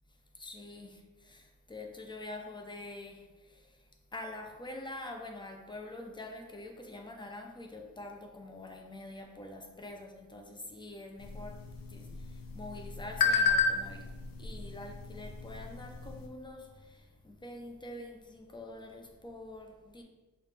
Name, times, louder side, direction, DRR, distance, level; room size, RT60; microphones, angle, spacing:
voice 1, 0.4-3.7 4.1-14.1 14.4-20.0, left 2 dB, 15° left, 0.4 m, -46 dB
sound 1, 11.2-16.3, left 4 dB, 80° left, 0.6 m, -33 dB
4.8 x 2.8 x 3.3 m
wide cardioid pair, 170°, 33 cm